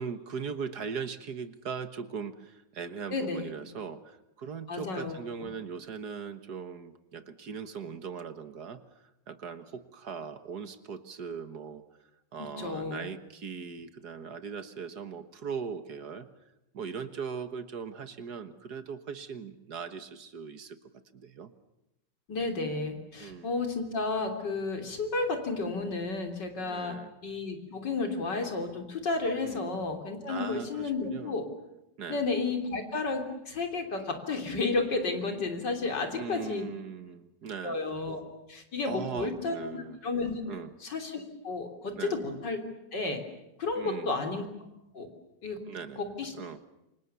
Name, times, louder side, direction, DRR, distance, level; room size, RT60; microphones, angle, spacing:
voice 1, 0.0-11.8 12.3-16.3 16.7-20.8 21.1-21.5 23.2-23.6 26.6-27.1 29.4-29.7 30.3-31.4 32.0-32.3 36.1-37.8 38.9-40.0 40.5-40.7 42.0-42.2 43.8-44.2 45.7-46.1 46.3-46.6, right 6 dB, 60° right, 11 dB, 1.9 m, -39 dB
voice 2, 3.1-3.5 4.7-5.2 12.4-13.1 22.3-27.0 27.2-31.5 32.1-36.6 37.6-38.2 38.5-40.4 40.8-42.6 42.9-43.2 43.6-44.4 44.9-45.1 45.4-45.6 46.0-46.3, left 3 dB, 70° left, 5 dB, 4.0 m, -32 dB
28.0 x 25.5 x 7.0 m, 0.89 s
omnidirectional pair, 1.9 m